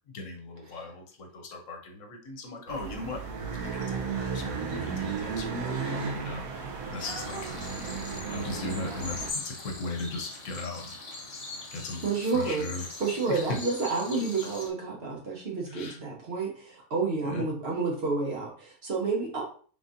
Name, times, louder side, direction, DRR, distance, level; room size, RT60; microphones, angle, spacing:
voice 1, 0.1-3.2 3.7-7.4 8.3-10.9 11.7-12.0 12.3-12.8 13.3-13.4 15.7-16.0 17.2-17.4, left 3 dB, 70° left, 2 dB, 1.1 m, -38 dB
sound 1, 2.7-9.3, right 5 dB, 85° right, 1.1 m, -34 dB
sound 2, 7.0-14.7, left 3 dB, 40° left, 0.6 m, -41 dB
voice 2, 12.0-19.5, right 4 dB, 50° right, -1 dB, 1.1 m, -30 dB
3.9 x 3.5 x 2.6 m, 0.44 s
omnidirectional pair, 1.4 m